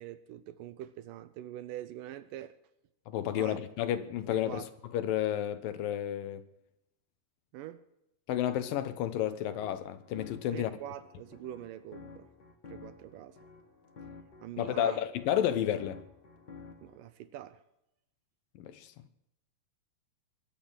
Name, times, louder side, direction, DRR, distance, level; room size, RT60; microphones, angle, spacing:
voice 1, 0.0-2.6 3.2-3.6 4.2-4.7 7.5-7.8 10.5-12.3 12.7-13.4 14.4-15.0 16.8-17.6, right 12 dB, 75° right, 2.0 m, -44 dB
voice 2, 3.1-4.6 4.9-6.4 8.3-10.7 14.6-16.0 18.6-18.9, left 11 dB, 70° left, 2.4 m, -31 dB
sound 1, 9.3-17.0, left 4 dB, 45° left, 1.4 m, -52 dB
22.5 x 8.6 x 7.4 m
omnidirectional pair, 4.6 m